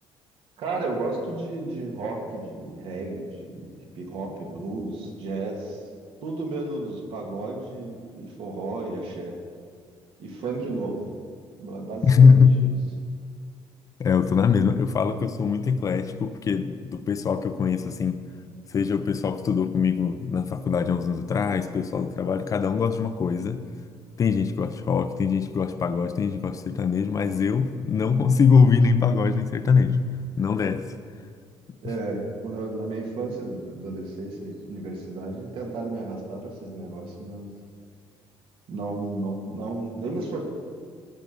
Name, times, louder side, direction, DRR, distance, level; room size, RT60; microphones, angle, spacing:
voice 1, 0.6-5.8 6.2-9.4 10.2-11.0 11.6-12.7 31.8-37.5 38.7-40.4, right 2 dB, 65° right, 0 dB, 2.4 m, -33 dB
voice 2, 12.0-12.5 14.0-18.2 18.7-23.6 24.2-30.0 30.4-30.8, left 5 dB, 35° left, 11 dB, 0.6 m, -22 dB
18.0 x 6.3 x 5.4 m, 2.1 s
cardioid pair, 140°, 10 cm